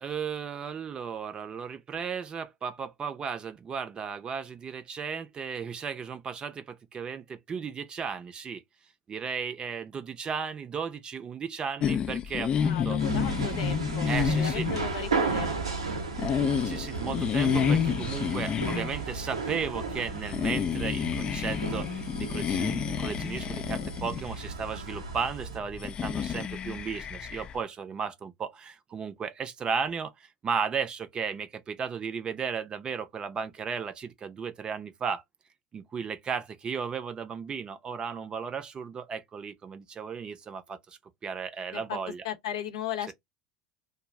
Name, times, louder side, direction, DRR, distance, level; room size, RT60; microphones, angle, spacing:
voice 1, 0.0-8.6 9.1-13.0 14.1-14.7 16.6-35.2 35.7-42.2, right 6 dB, 30° right, 0.5 m, -35 dB
sound 1, 11.8-27.6, left 8 dB, 35° left, 0.3 m, -30 dB
voice 2, 12.6-15.7 41.7-42.0 42.2-43.1, left 9 dB, 75° left, 0.7 m, -36 dB
sound 2, 13.0-25.6, right 4 dB, 85° right, 0.6 m, -34 dB
2.4 x 2.0 x 3.4 m
hypercardioid pair, 75°, 3 cm